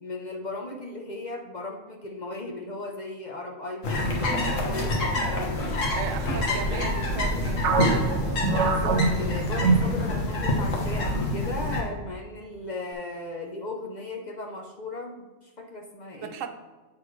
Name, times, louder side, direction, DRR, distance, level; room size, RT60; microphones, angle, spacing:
voice 1, 0.0-5.7 6.2-7.5 8.6-16.3, left 2 dB, 45° left, 1 dB, 0.7 m, -37 dB
sound 1, 3.8-11.8, left 1 dB, 75° left, 1.6 m, -27 dB
voice 2, 5.9-7.7 16.2-16.5, right 8 dB, 85° right, 8 dB, 1.0 m, -36 dB
sound 2, 7.6-10.5 10.8-11.0 11.7-12.1, right 4 dB, 70° right, 1.0 m, -25 dB
8.5 x 5.9 x 3.1 m, 1.3 s
omnidirectional pair, 1.3 m